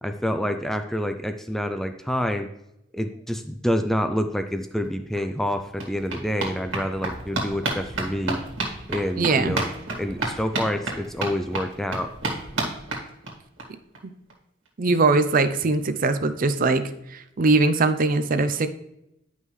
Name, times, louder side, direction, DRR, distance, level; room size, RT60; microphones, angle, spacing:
voice 1, 0.0-2.5 2.9-8.4 8.9-9.7 10.0-12.1, equal, ahead, 7 dB, 0.3 m, -27 dB
sound 1, 4.8-4.9 5.2-13.6 13.9-14.0 14.3-14.4 14.6-14.7, right 2 dB, 85° right, 1.8 m, -31 dB
voice 2, 9.2-9.5 14.0-14.1 14.8-18.7, right 3 dB, 45° right, 10 dB, 0.5 m, -21 dB
9.7 x 5.4 x 3.1 m, 0.82 s
head